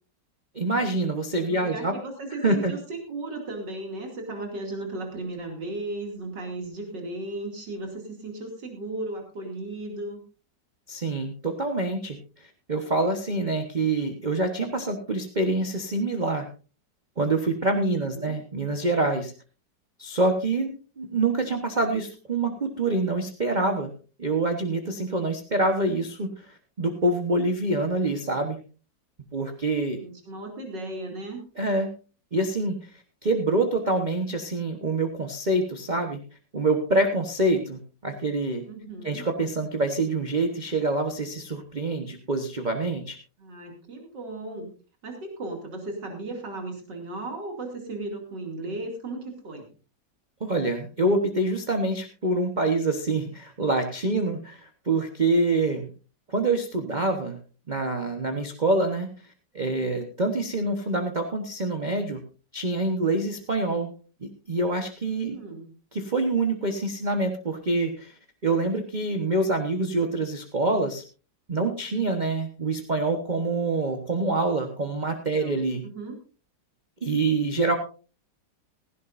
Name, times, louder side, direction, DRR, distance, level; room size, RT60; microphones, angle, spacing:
voice 1, 0.5-1.9 2.4-2.7 10.9-16.5 17.2-19.3 20.0-23.9 24.2-28.6 29.3-30.0 31.6-31.9 32.3-32.8 33.2-36.2 36.5-38.6 39.0-43.2 50.4-55.9 56.3-57.4 57.7-59.1 59.5-62.2 62.5-63.9 64.2-65.4 65.9-71.0 71.5-75.8 77.0-77.7, right 2 dB, 30° right, 4 dB, 1.1 m, -26 dB
voice 2, 1.5-10.2 17.9-18.4 29.9-31.4 38.6-39.2 43.4-44.7 45.0-49.7 65.2-65.6 75.4-76.2, right 2 dB, 75° right, 2 dB, 3.2 m, -36 dB
17.0 x 15.5 x 2.6 m, 0.36 s
omnidirectional pair, 1.9 m